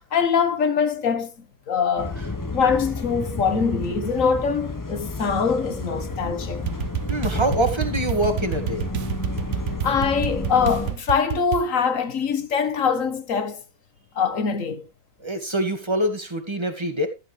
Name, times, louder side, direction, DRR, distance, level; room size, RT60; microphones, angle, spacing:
voice 1, 0.1-2.1 2.5-6.7 9.8-13.6 14.1-14.9, left 6 dB, 55° left, 1.7 m, -23 dB
sound 1, 2.0-10.9, left 2 dB, 15° left, 0.9 m, -31 dB
sound 2, 6.6-11.7, right 9 dB, 55° right, 0.9 m, -29 dB
voice 2, 7.1-8.9 15.2-17.1, right 1 dB, 15° right, 2.2 m, -25 dB
14.5 x 9.0 x 3.4 m
omnidirectional pair, 1.7 m